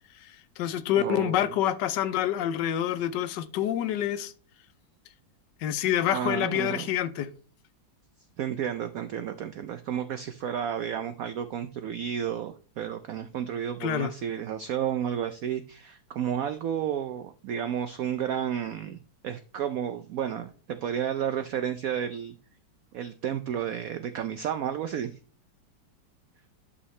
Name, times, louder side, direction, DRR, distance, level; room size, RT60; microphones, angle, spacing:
voice 1, 0.2-4.3 5.6-7.3 13.8-14.1, left 11 dB, 75° left, 1.3 m, -27 dB
voice 2, 0.9-1.5 6.1-6.9 8.4-22.4 22.9-25.2, right 9 dB, 75° right, 0.8 m, -32 dB
11.0 x 5.6 x 3.2 m
omnidirectional pair, 2.0 m